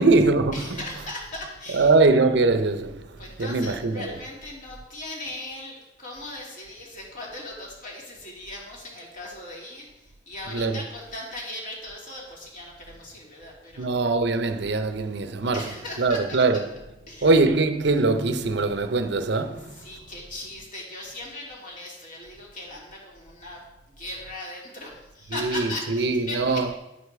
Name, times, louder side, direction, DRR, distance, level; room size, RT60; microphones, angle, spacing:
voice 1, 0.0-0.8 1.7-4.1 10.5-10.8 13.8-15.7 16.0-16.6 17.2-19.8 25.3-26.7, right 3 dB, 70° right, 0.7 m, -22 dB
voice 2, 0.5-1.9 3.2-13.9 15.5-16.6 17.1-17.3 19.7-23.6 23.9-26.6, left 1 dB, 50° left, 3.1 m, -38 dB
10.0 x 8.2 x 4.8 m
head